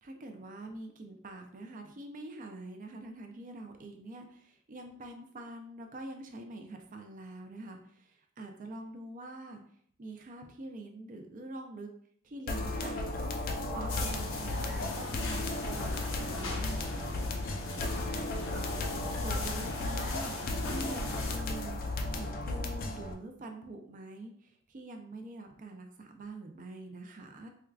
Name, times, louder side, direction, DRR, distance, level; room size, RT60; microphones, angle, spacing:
voice 1, 0.0-9.6 10.0-11.9 12.2-13.3 13.7-17.4 18.1-18.9 19.2-20.4 20.7-21.8 22.2-27.5, right 2 dB, 40° right, 4 dB, 0.5 m, -45 dB
sound 1, 12.5-23.1, left 2 dB, 50° left, 0.4 m, -35 dB
sound 2, 13.9-21.4, left 3 dB, 85° left, 0.7 m, -40 dB
4.5 x 2.3 x 2.3 m, 0.63 s
head